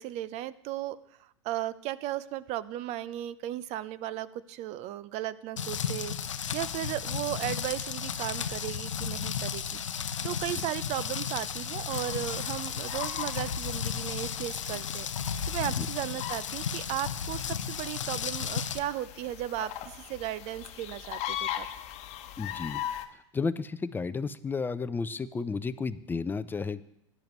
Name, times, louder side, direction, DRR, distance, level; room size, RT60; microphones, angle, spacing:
voice 1, 0.0-15.1 15.5-21.7, right 13 dB, 45° right, 17 dB, 0.6 m, -36 dB
Rain, 5.6-18.8, left 7 dB, 85° left, 0.7 m, -34 dB
sound 1, 11.9-23.1, left 11 dB, 45° left, 1.1 m, -40 dB
voice 2, 22.4-22.8 23.3-26.8, left 4 dB, 10° left, 15 dB, 0.5 m, -32 dB
16.5 x 11.0 x 3.1 m, 0.79 s
hypercardioid pair, 95°, 16 cm